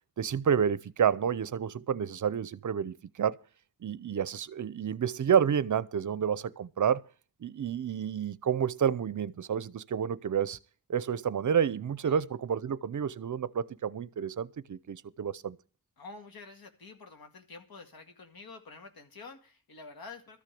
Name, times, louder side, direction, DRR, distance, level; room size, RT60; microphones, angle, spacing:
voice 1, 0.2-3.4 3.8-7.0 7.4-10.6 10.9-15.6, right 8 dB, 55° right, 0.6 m, -29 dB
voice 2, 16.0-20.4, left 4 dB, 80° left, 2.2 m, -48 dB
13.5 x 6.3 x 8.5 m
wide cardioid pair, 125°, 35 cm